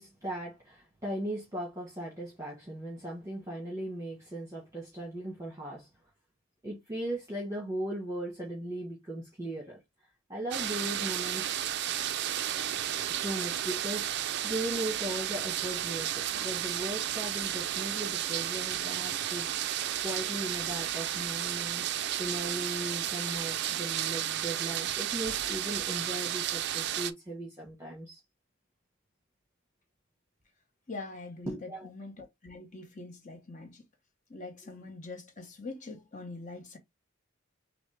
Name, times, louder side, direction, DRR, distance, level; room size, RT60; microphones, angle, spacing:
voice 1, 0.0-5.9 6.6-9.8 10.3-11.6 13.1-28.2 31.5-31.9, right 1 dB, 15° right, 1.3 m, -38 dB
sound 1, 10.5-27.1, right 11 dB, 50° right, 0.4 m, -33 dB
voice 2, 30.9-33.8 34.3-36.8, left 3 dB, 35° left, 0.9 m, -43 dB
6.2 x 2.1 x 3.3 m
head